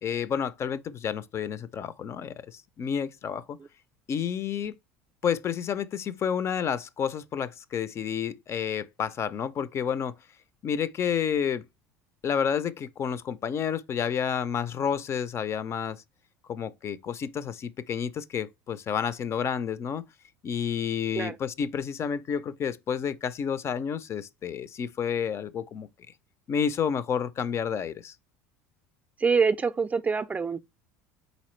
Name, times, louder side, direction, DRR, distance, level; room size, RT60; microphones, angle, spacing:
voice 1, 0.0-3.6 4.1-4.7 5.2-10.1 10.6-11.6 12.2-16.0 16.5-20.0 20.4-25.9 26.5-28.1, left 7 dB, 40° left, 0.5 m, -30 dB
voice 2, 29.2-30.6, right 5 dB, 20° right, 0.4 m, -25 dB
4.1 x 4.0 x 3.1 m
hypercardioid pair, 85°, 7 cm